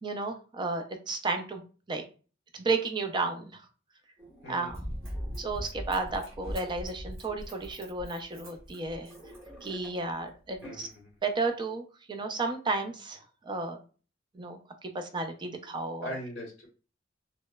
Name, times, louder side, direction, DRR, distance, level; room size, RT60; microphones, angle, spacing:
voice 1, 0.0-1.6 1.9-2.0 2.5-3.6 4.5-4.8 5.4-9.1 9.6-10.9 11.2-13.8 14.3-16.2, right 3 dB, 25° right, 5 dB, 0.4 m, -33 dB
sound 1, 4.2-6.6 7.2-7.5 8.2-8.3 8.8-10.2 10.5-10.8, right 1 dB, 10° right, 0.8 m, -51 dB
Run, 4.7-10.0 10.5-10.6, equal, 85° right, 1.2 m, -40 dB
voice 2, 10.6-11.1 16.0-16.7, left 1 dB, 55° left, -1 dB, 0.7 m, -40 dB
2.9 x 2.0 x 2.2 m, 0.35 s
head